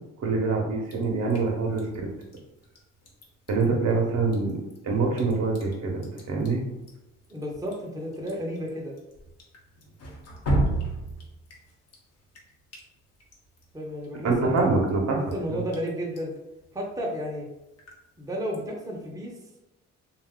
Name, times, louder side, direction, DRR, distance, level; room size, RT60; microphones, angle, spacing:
voice 1, 0.2-2.1 3.5-4.6 4.8-6.6 14.2-15.6, right 3 dB, 60° right, 0 dB, 0.8 m, -25 dB
Drip, 0.8-19.1, right 1 dB, 55° left, 0.8 m, -37 dB
voice 2, 7.3-9.0 13.7-14.8 15.1-16.3 16.7-17.4 18.2-19.3, equal, 10° right, -2 dB, 0.7 m, -32 dB
2.5 x 2.3 x 3.5 m, 0.97 s
cardioid pair, 90°, 30 cm